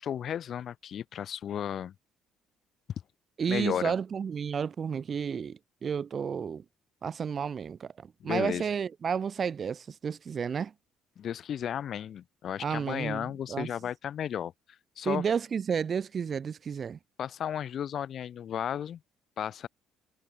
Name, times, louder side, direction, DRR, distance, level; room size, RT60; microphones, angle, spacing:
voice 1, 0.0-1.9 3.5-3.9 8.2-8.7 11.2-14.5 15.0-15.3 17.2-19.0 19.4-19.7, left 9 dB, 45° left, 6.9 m, -34 dB
voice 2, 3.4-6.6 7.0-10.7 12.6-13.7 15.1-17.0, right 6 dB, 35° right, 2.2 m, -31 dB
cardioid pair, 150°, 0 cm